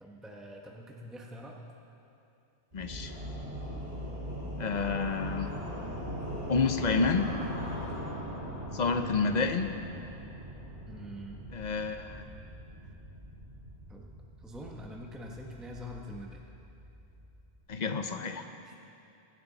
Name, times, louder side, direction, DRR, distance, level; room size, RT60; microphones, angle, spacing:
voice 1, 0.0-1.6 10.9-11.4 12.1-12.2 13.9-14.1 14.4-16.5 18.6-18.8, equal, ahead, -1 dB, 1.0 m, -45 dB
voice 2, 2.7-3.1 4.6-5.5 6.5-7.3 8.7-9.8 11.5-12.3 17.7-18.5, left 4 dB, 45° left, 7 dB, 0.8 m, -29 dB
sound 1, 2.7-17.6, equal, 65° right, 3.5 m, -40 dB
16.5 x 14.0 x 4.0 m, 2.7 s
omnidirectional pair, 1.1 m